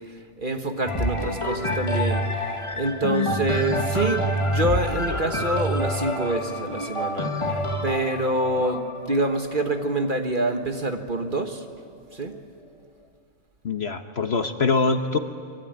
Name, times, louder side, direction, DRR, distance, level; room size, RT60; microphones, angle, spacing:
voice 1, 0.4-2.3 2.8-11.6 12.1-12.4, right 2 dB, 35° right, 6 dB, 1.6 m, -26 dB
sound 1, 0.9-10.6 11.3-11.4, equal, 20° left, 1.8 m, -27 dB
voice 2, 13.6-15.2, left 4 dB, 50° left, 7 dB, 1.2 m, -24 dB
25.0 x 24.0 x 9.1 m, 2.3 s
omnidirectional pair, 1.5 m